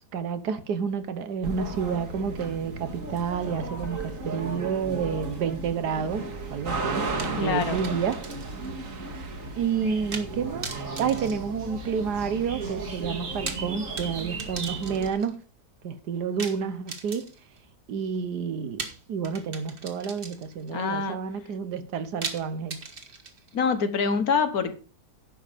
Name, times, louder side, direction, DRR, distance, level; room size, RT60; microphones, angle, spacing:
voice 1, 0.1-8.2 9.6-10.7 11.0-15.4 15.8-17.3 17.9-22.8, right 6 dB, 75° right, 1.6 m, -30 dB
sound 1, 1.4-15.1, right 3 dB, 50° right, 2.1 m, -34 dB
sound 2, 7.2-8.7 9.0-9.1 10.1-10.3 10.6-12.2 13.2-15.3 16.4-17.6 18.8-20.7 22.2-23.6, right 4 dB, 35° right, 1.5 m, -39 dB
voice 2, 7.4-7.8 20.7-21.2 23.5-24.7, left 5 dB, 60° left, 1.6 m, -25 dB
11.0 x 7.1 x 5.1 m
omnidirectional pair, 1.8 m